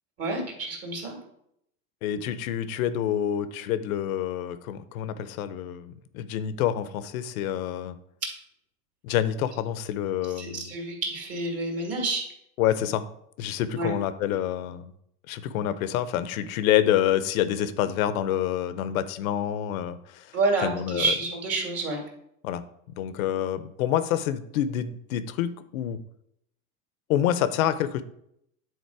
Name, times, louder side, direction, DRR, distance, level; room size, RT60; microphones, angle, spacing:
voice 1, 0.2-1.2 8.2-8.3 10.4-12.3 13.7-13.9 20.3-22.0, right 3 dB, 35° right, 1 dB, 2.3 m, -28 dB
voice 2, 2.0-8.0 9.0-10.7 12.6-13.0 13.4-14.9 15.3-20.4 20.6-21.1 22.4-22.6 23.0-26.0 27.1-28.0, left 11 dB, 70° left, 13 dB, 0.8 m, -27 dB
9.5 x 4.0 x 4.7 m, 0.75 s
supercardioid pair, 125°, 43 cm